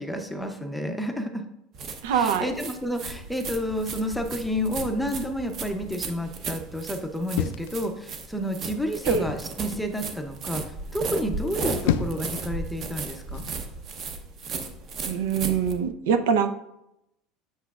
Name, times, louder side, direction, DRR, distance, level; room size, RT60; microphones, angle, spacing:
voice 1, 0.0-1.4 2.1-10.6 10.9-13.4, equal, ahead, 5 dB, 0.5 m, -30 dB
sound 1, 1.7-15.7, right 4 dB, 35° right, 0.7 m, -35 dB
voice 2, 2.0-2.5 9.0-9.3 15.0-16.5, right 7 dB, 90° right, 9 dB, 0.5 m, -23 dB
sound 2, 7.3-8.4 9.1-9.5 11.5-12.4 13.3-13.6, left 10 dB, 80° left, 0.4 m, -29 dB
8.0 x 6.1 x 2.4 m, 0.83 s
cardioid pair, 160°, 0 cm